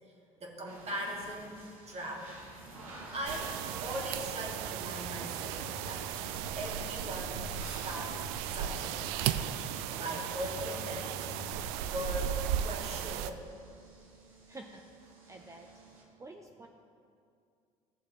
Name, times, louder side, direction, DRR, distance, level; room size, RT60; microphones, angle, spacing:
voice 1, 0.0-1.6 1.9-2.4 2.8-6.1 6.6-9.0 9.9-13.4, equal, 35° right, -1 dB, 2.1 m, -40 dB
sound 1, 0.7-16.0, right 3 dB, 85° right, 1.2 m, -53 dB
sound 2, 2.5-12.5, left 5 dB, 80° left, 0.8 m, -50 dB
sound 3, 3.3-13.3, right 10 dB, 65° right, 0.4 m, -36 dB
voice 2, 14.5-15.7 16.2-16.7, right 2 dB, 15° right, 2 dB, 0.7 m, -49 dB
14.0 x 7.2 x 3.1 m, 2.3 s
hypercardioid pair, 55°, 17 cm